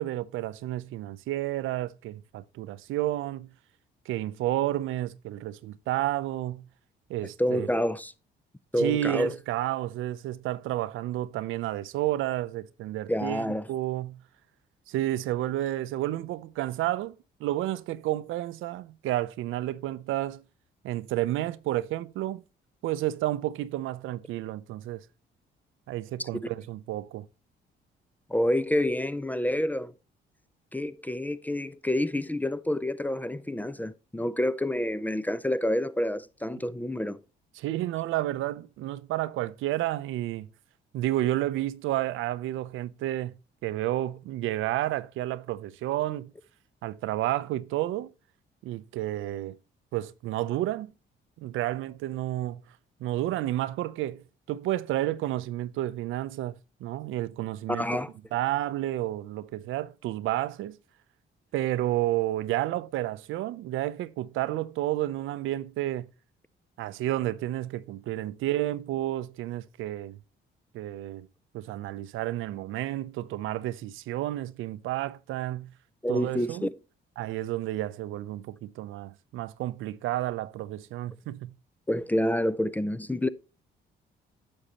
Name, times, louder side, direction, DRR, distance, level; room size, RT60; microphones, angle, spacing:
voice 1, 0.0-3.5 4.1-6.7 7.1-7.7 8.8-14.2 14.9-20.4 20.8-22.4 22.8-25.0 25.9-27.3 37.5-40.5 40.9-43.4 43.6-46.3 46.8-48.1 48.6-49.6 49.9-50.9 51.4-52.6 53.0-57.9 58.3-60.8 61.5-66.1 66.8-70.2 70.7-71.3 71.5-75.7 76.1-76.7 77.2-81.5, right 14 dB, 85° right, 0.5 m, -31 dB
voice 2, 7.4-8.1 8.7-9.3 13.1-13.7 26.2-26.3 28.3-29.9 30.7-37.2 57.7-58.1 76.0-76.7 81.9-83.3, left 1 dB, 10° left, 0.4 m, -28 dB
9.9 x 6.6 x 2.9 m
cardioid pair, 90°, 20 cm